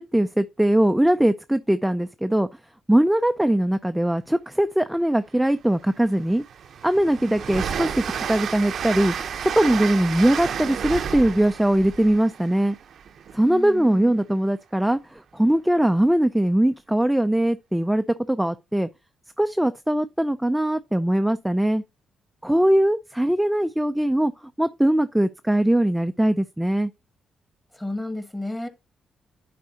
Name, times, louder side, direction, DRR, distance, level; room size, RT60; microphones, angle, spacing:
voice 1, 0.0-2.5 2.9-6.4 6.8-12.8 13.3-18.9 19.4-21.8 22.4-24.3 24.6-26.9, right 1 dB, 5° right, 0.4 m, -21 dB
Train, 5.4-5.5 5.9-13.6, right 7 dB, 65° right, 0.6 m, -31 dB
voice 2, 13.4-14.1 27.7-28.7, left 1 dB, 15° left, 1.4 m, -32 dB
10.5 x 4.1 x 2.8 m
cardioid pair, 70°, 0 cm